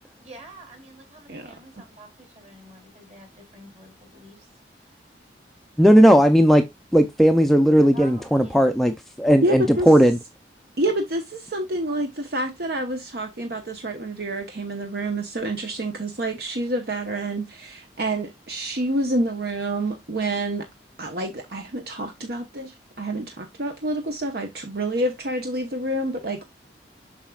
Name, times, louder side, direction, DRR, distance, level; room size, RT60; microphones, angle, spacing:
voice 1, 0.2-4.5 4.8-4.9 7.9-8.6 9.7-9.9, right 1 dB, 35° right, 3.3 m, -46 dB
voice 2, 5.8-6.6 6.9-8.9 9.2-10.2, equal, ahead, 0.5 m, -16 dB
voice 3, 9.4-10.1 10.8-20.7 21.0-22.7 23.0-26.5, right 1 dB, 55° right, 1.0 m, -28 dB
7.3 x 5.7 x 2.3 m
head